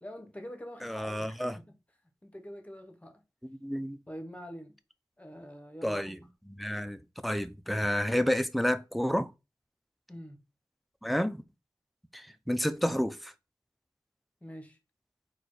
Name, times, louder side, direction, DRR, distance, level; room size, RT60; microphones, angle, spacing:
voice 1, 0.0-1.5 2.2-3.2 4.1-4.7 5.2-6.0 10.1-10.4 14.4-14.8, equal, 15° left, 1.0 m, -45 dB
voice 2, 0.8-1.6 3.6-4.0 5.8-6.2 6.5-9.3 11.0-11.4 12.1-13.3, equal, ahead, 0.4 m, -30 dB
4.1 x 2.3 x 4.6 m
wide cardioid pair, 60°, 8 cm